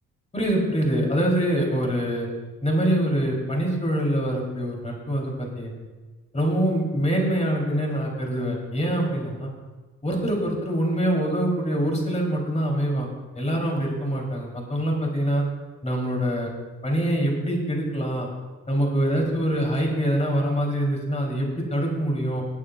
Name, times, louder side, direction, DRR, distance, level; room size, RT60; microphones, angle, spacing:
voice 1, 0.3-2.3 2.6-5.7 6.3-9.5 10.0-13.1 13.3-15.4 15.8-16.5 16.8-18.3 18.7-22.4, right 1 dB, 20° left, -1 dB, 3.7 m, -24 dB
23.5 x 8.5 x 2.5 m, 1.3 s
cardioid pair, 90°, 30 cm